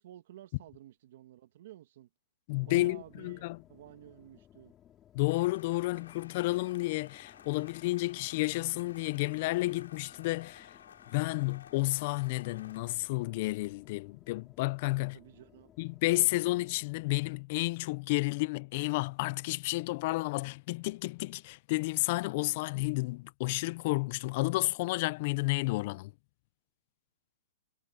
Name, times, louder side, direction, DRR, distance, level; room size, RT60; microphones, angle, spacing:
voice 1, 0.0-2.1 2.6-4.7 14.9-15.7, right 13 dB, 55° right, 1.6 m, -52 dB
voice 2, 2.5-3.6 5.1-10.8 11.1-15.2 15.8-26.1, left 22 dB, 40° left, 0.4 m, -31 dB
sound 1, 2.5-17.3, left 10 dB, 20° left, 5.2 m, -60 dB
sound 2, 5.3-12.8, left 8 dB, 85° left, 3.6 m, -55 dB
hypercardioid pair, 155°, 0 cm